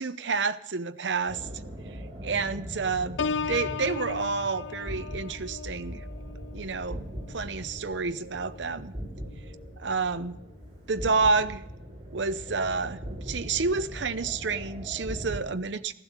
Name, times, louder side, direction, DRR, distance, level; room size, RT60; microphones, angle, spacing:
voice 1, 0.0-1.5 2.2-3.2 3.5-6.0 6.5-7.0 7.3-8.9 9.8-10.4 10.9-11.6 12.1-15.9, right 4 dB, 80° right, 11 dB, 0.8 m, -29 dB
sound 1, 1.3-15.4, equal, 25° right, 6.0 m, -40 dB
Piano, 3.2-8.8 9.3-9.6, left 5 dB, 80° left, 0.5 m, -37 dB
15.5 x 12.0 x 7.3 m, 0.85 s
head